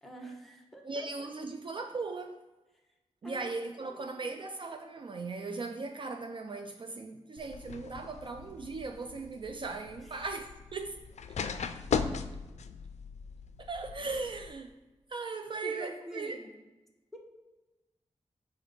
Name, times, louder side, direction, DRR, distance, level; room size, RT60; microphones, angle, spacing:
voice 1, 0.0-1.3 3.2-3.5 3.8-4.3 10.1-10.2 15.6-16.5 17.1-17.2, equal, ahead, 0.9 m, -46 dB
voice 2, 0.8-2.5 3.2-11.0 11.6-11.7 13.6-14.7 15.1-16.4, right 3 dB, 45° right, 0.3 m, -38 dB
sound 1, 7.4-14.5, left 6 dB, 80° left, 0.4 m, -38 dB
5.0 x 3.9 x 5.4 m
wide cardioid pair, 135°, 12 cm